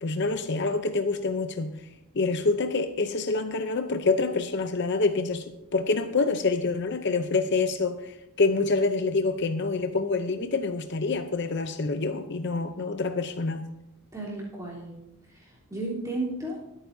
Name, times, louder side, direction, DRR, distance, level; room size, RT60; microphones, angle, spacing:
voice 1, 0.0-1.8 2.1-5.4 5.7-13.7, left 3 dB, 50° left, 8 dB, 0.7 m, -26 dB
voice 2, 14.1-15.0 15.3-16.6, right 2 dB, 15° right, -6 dB, 3.5 m, -34 dB
25.0 x 9.0 x 2.7 m, 0.90 s
head